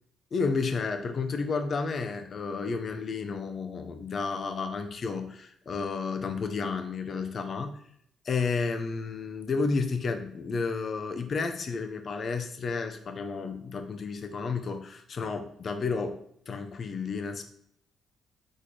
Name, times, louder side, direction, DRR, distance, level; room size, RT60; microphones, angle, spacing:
voice 1, 0.3-7.8 8.2-16.2 16.5-17.4, left 4 dB, 45° left, 7 dB, 0.6 m, -31 dB
4.3 x 3.7 x 3.2 m, 0.67 s
cardioid pair, 90°, 0 cm